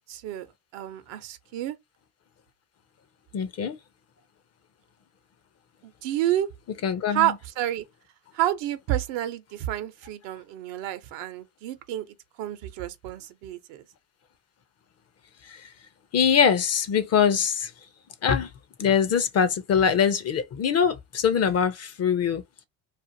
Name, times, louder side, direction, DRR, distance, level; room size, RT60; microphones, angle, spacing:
voice 1, 0.1-0.5 0.7-1.8 5.8-6.5 7.1-7.8 8.3-12.1 12.4-13.8, right 13 dB, 70° right, 0.7 m, -29 dB
voice 2, 3.3-3.8 6.8-7.3 15.4-15.7 16.1-17.7 18.2-18.5 18.8-22.6, left 7 dB, 35° left, 0.5 m, -23 dB
2.5 x 2.4 x 2.7 m
supercardioid pair, 95°, 45 cm